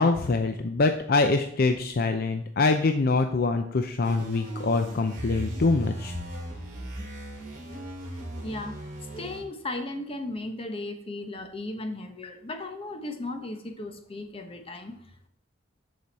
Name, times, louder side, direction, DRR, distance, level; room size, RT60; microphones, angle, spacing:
voice 1, 0.0-6.1, left 3 dB, 55° left, 7 dB, 0.5 m, -24 dB
sound 1, 4.0-9.4, right 1 dB, 45° right, 3.4 m, -37 dB
voice 2, 8.4-15.3, left 2 dB, 30° left, 6 dB, 1.1 m, -36 dB
13.0 x 5.0 x 4.2 m, 0.70 s
head